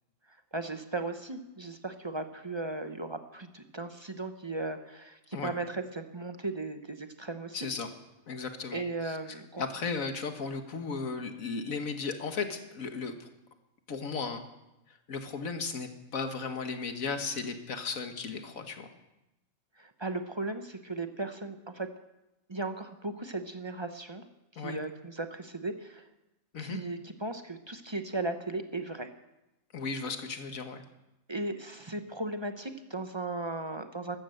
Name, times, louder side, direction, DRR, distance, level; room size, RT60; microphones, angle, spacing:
voice 1, 0.5-7.6 8.7-9.7 19.8-21.9 22.5-24.2 24.5-26.0 26.6-29.1 31.3-34.2, right 2 dB, 25° right, 7 dB, 0.8 m, -36 dB
voice 2, 7.5-7.9 8.3-9.2 9.6-13.3 13.9-14.4 14.9-18.9 24.6-24.8 26.5-26.8 29.7-30.8, left 4 dB, 80° left, 7 dB, 1.8 m, -35 dB
14.0 x 12.5 x 7.8 m, 0.95 s
omnidirectional pair, 1.4 m